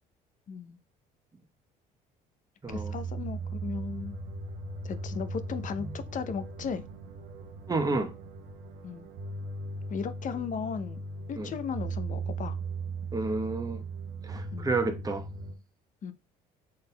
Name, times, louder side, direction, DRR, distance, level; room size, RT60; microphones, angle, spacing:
voice 1, 0.5-0.8 2.7-4.2 4.8-6.8 8.8-9.1 9.9-11.0 11.3-12.6 14.5-14.7 16.0-16.1, left 6 dB, 45° left, 0.6 m, -36 dB
voice 2, 2.6-3.0 7.7-8.1 11.4-11.5 13.1-13.8 14.2-15.3, right 3 dB, 20° right, 0.9 m, -30 dB
sound 1, 2.7-15.5, right 3 dB, 80° right, 0.8 m, -38 dB
5.3 x 4.0 x 2.2 m
supercardioid pair, 75°, 19 cm